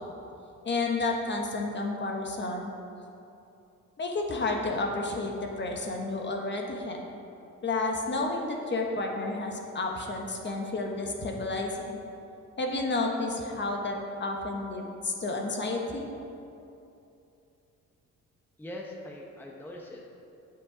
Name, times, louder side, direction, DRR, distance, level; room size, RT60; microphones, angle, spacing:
voice 1, 0.6-2.7 4.0-7.0 7.6-12.0 12.6-16.1, left 2 dB, 35° left, 1 dB, 1.1 m, -31 dB
voice 2, 18.6-20.1, left 1 dB, 5° left, -1 dB, 0.8 m, -42 dB
7.8 x 6.1 x 4.9 m, 2.7 s
cardioid pair, 90°, 30 cm